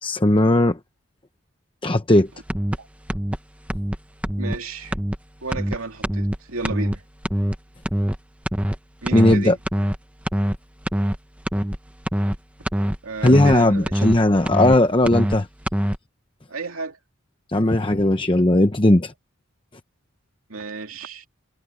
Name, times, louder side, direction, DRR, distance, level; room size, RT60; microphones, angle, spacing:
voice 1, 0.0-0.8 1.8-2.3 9.1-9.6 13.2-15.5 17.5-19.1, left 1 dB, 25° left, 0.8 m, -17 dB
sound 1, 2.5-2.8 3.1-3.4 3.7-4.0 4.2-4.6 4.9-5.2 5.5-5.8 6.0-6.4 6.6-7.0 7.2-7.6 7.8-8.2 8.5-8.8 9.1-9.4 9.6-10.0 10.3-10.6 10.9-11.2 11.5-11.8 12.1-12.4 12.7-13.0 13.3-13.6 13.9-14.2 14.4-14.8 15.1-15.4 15.7-16.0, equal, 5° right, 0.8 m, -23 dB
voice 2, 4.4-4.9 5.4-7.0 9.0-9.6 13.0-14.1 16.5-17.0 20.5-21.3, right 3 dB, 85° right, 2.6 m, -32 dB
head